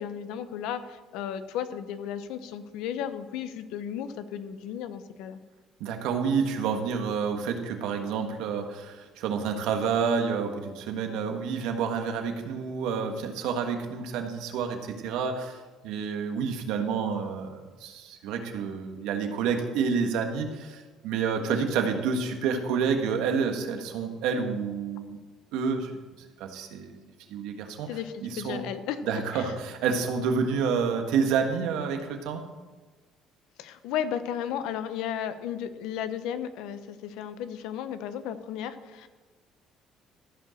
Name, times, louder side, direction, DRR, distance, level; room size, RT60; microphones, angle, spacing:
voice 1, 0.0-5.4 21.5-21.7 27.9-29.5 33.6-39.1, left 9 dB, 85° left, 11 dB, 0.8 m, -34 dB
voice 2, 5.8-25.2 25.5-25.9 26.4-27.0 27.3-27.9 28.2-28.6 29.1-32.4, right 6 dB, 85° right, 4 dB, 1.5 m, -29 dB
14.5 x 5.4 x 6.4 m, 1.3 s
cardioid pair, 130°, 0 cm